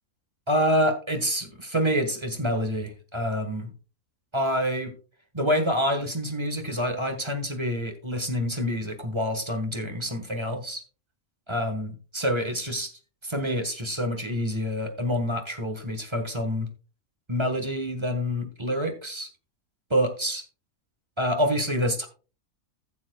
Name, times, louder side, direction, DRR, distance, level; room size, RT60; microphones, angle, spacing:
voice 1, 0.5-3.7 4.3-4.9 5.3-10.8 11.5-12.9 13.2-16.7 17.3-19.3 19.9-20.4 21.2-22.1, equal, 20° right, 5 dB, 1.3 m, -27 dB
16.0 x 7.3 x 2.3 m, 0.35 s
omnidirectional pair, 1.5 m